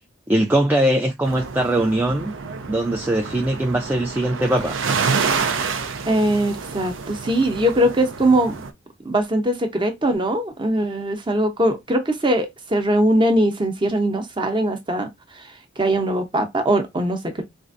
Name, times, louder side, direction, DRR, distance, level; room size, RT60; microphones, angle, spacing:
voice 1, 0.3-2.3 2.7-4.8, right 1 dB, 10° right, 0.3 m, -21 dB
sound 1, 1.2-8.7, right 5 dB, 85° right, 0.6 m, -28 dB
voice 2, 6.0-8.6 9.0-15.1 15.3-17.4, right 1 dB, 25° right, 0.8 m, -21 dB
4.3 x 2.5 x 2.5 m
head